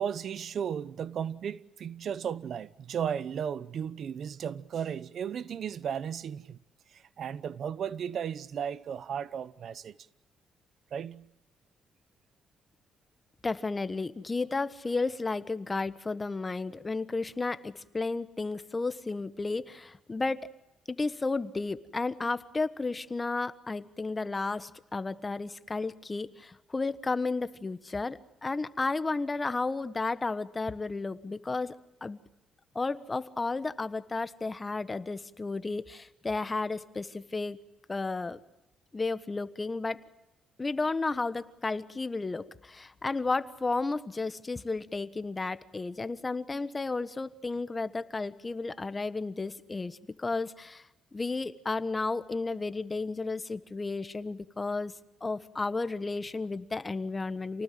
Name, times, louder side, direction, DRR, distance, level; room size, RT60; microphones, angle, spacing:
voice 1, 0.0-6.6 6.9-10.0 10.9-11.3, right 8 dB, 60° right, 0.9 m, -35 dB
voice 2, 13.4-20.5 20.9-31.8 32.0-32.2 32.7-37.6 37.9-38.4 38.9-40.0 40.6-50.8 51.1-54.9 55.2-57.6, left 3 dB, 25° left, 1.3 m, -33 dB
28.5 x 19.0 x 7.7 m
cardioid pair, 90°, 0 cm